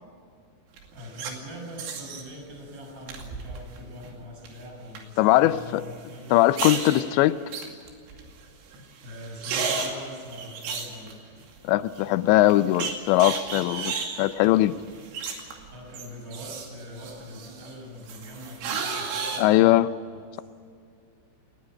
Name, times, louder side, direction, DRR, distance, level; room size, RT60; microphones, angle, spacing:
sound 1, 0.8-1.3 1.8-2.2 3.1-3.8 4.0-4.5 5.0-5.1 6.3-7.0 7.5-8.4 8.7-8.8 9.1-11.6 12.0-12.1 12.5-15.7 15.9-17.7 18.1-19.4, right 5 dB, 90° right, 5.0 m, -33 dB
voice 1, 0.9-6.5 9.0-11.2 15.7-20.4, equal, 20° right, 0 dB, 6.4 m, -42 dB
voice 2, 5.2-5.8 6.3-7.4 11.6-14.8 19.4-19.9, left 15 dB, 80° left, 14 dB, 2.7 m, -20 dB
20.0 x 19.5 x 8.8 m, 2.4 s
omnidirectional pair, 5.5 m